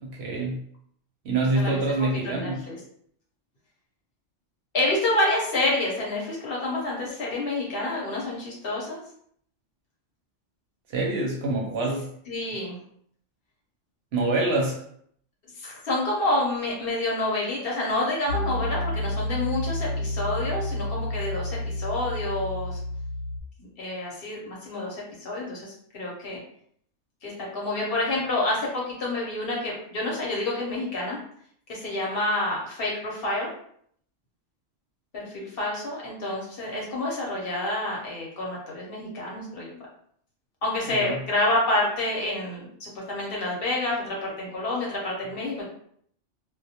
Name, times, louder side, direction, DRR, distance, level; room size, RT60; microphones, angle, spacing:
voice 1, 0.0-0.6 1.2-2.6 10.9-12.1 14.1-14.8 40.9-41.2, right 2 dB, 65° right, -1 dB, 0.8 m, -26 dB
voice 2, 2.2-2.8 4.7-9.0 12.3-12.8 15.6-22.8 23.6-26.4 27.2-31.2 31.7-33.5 35.1-39.7 40.6-45.7, left 2 dB, 55° left, -4 dB, 0.8 m, -28 dB
Piano, 18.3-23.4, left 1 dB, 85° left, 1.0 m, -30 dB
2.1 x 2.1 x 2.7 m, 0.65 s
omnidirectional pair, 1.3 m